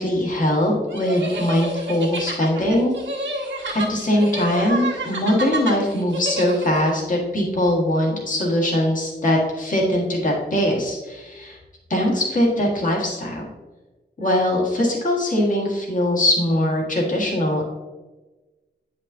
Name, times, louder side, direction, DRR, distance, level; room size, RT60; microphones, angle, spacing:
voice 1, 0.0-2.9 3.2-3.4 3.7-11.6 11.9-13.4 14.2-17.6, left 1 dB, 45° left, -2 dB, 1.7 m, -21 dB
sound 1, 0.9-6.9, right 1 dB, 85° right, 1.6 m, -29 dB
8.8 x 5.2 x 2.7 m, 1.2 s
wide cardioid pair, 180°, 19 cm